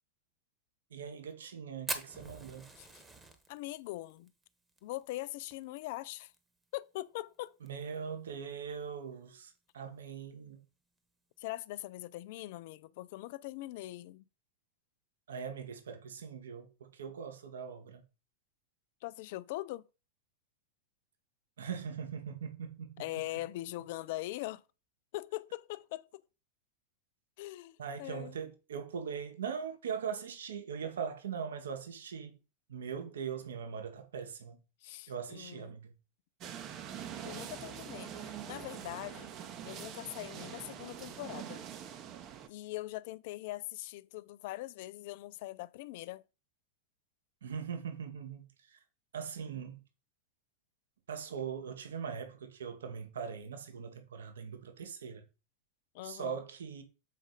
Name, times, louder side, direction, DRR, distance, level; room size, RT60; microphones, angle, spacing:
voice 1, 0.9-2.7 7.6-10.6 15.3-18.0 21.6-23.0 27.8-32.4 32.7-34.6 35.1-35.9 47.4-48.8 49.1-49.8 51.1-55.3 56.0-56.8, right 7 dB, 65° right, 1.2 m, -41 dB
Fire, 1.9-6.4 6.6-6.7 7.0-7.1 7.5-7.9 8.4-8.5 9.5-9.7, right 2 dB, 10° right, 1.2 m, -43 dB
voice 2, 3.5-4.3 4.8-6.3 6.7-7.5 11.4-14.2 19.0-19.9 23.0-24.6 25.1-26.2 27.4-28.4 34.8-35.8 37.2-39.3 39.6-41.7 42.5-46.2 55.9-56.4, left 17 dB, 50° left, 0.4 m, -42 dB
sound 1, 36.4-42.5, right 9 dB, 35° right, 0.9 m, -44 dB
7.5 x 4.9 x 3.9 m
figure-of-eight pair, 90°, 0 cm